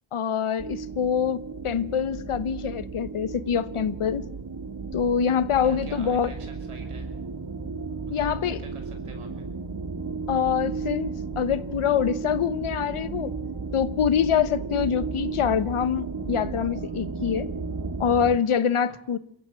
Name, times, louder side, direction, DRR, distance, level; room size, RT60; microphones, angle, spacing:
voice 1, 0.1-4.3 4.9-6.3 8.1-8.6 10.3-13.3 13.7-17.5 18.0-19.2, left 8 dB, 75° left, 1.2 m, -25 dB
sound 1, 0.6-18.4, right 4 dB, 50° right, 2.1 m, -34 dB
voice 2, 5.6-7.1 8.1-9.5 18.9-19.0, right 4 dB, 85° right, 5.6 m, -45 dB
23.0 x 15.0 x 9.2 m
cardioid pair, 45°, 50 cm